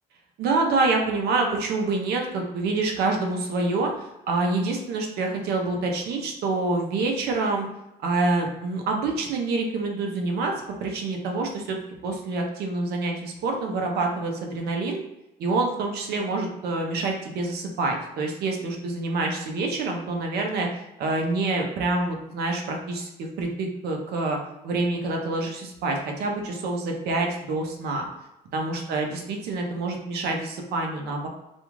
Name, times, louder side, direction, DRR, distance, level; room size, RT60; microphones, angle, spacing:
voice 1, 0.4-7.7 8.0-11.8 12.0-15.0 15.4-24.4 24.6-28.0 28.5-31.3, right 3 dB, 70° right, 2 dB, 0.7 m, -27 dB
2.5 x 2.3 x 3.0 m, 0.90 s
cardioid pair, 110°, 17 cm